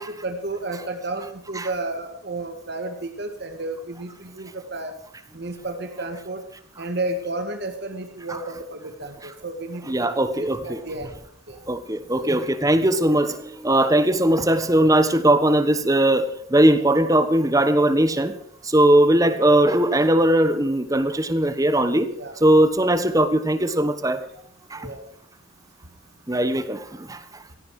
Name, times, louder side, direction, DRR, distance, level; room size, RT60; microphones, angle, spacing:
voice 1, 0.0-4.9 5.3-6.4 6.8-11.1 11.5-11.6 12.2-12.5 16.7-16.9 22.2-22.3 24.8-25.1, right 2 dB, 55° right, 6 dB, 1.9 m, -32 dB
voice 2, 9.9-10.8 11.7-18.3 18.6-22.1 22.4-24.2 24.7-24.9 26.3-27.2, right 1 dB, 15° right, 11 dB, 1.3 m, -19 dB
17.0 x 16.5 x 4.9 m, 0.64 s
head